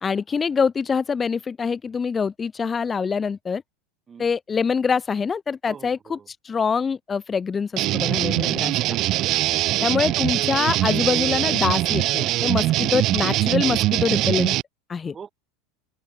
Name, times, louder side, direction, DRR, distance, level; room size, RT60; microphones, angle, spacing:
voice 1, 0.0-3.6 4.2-8.7 9.8-14.5 14.9-15.1, left 5 dB, 15° left, 0.4 m, -25 dB
voice 2, 5.7-6.3 8.4-9.0 9.5-9.8 15.1-15.3, right 7 dB, 15° right, 3.8 m, -43 dB
sound 1, 7.8-14.6, right 16 dB, 35° right, 0.6 m, -22 dB
supercardioid pair, 170°, 0 cm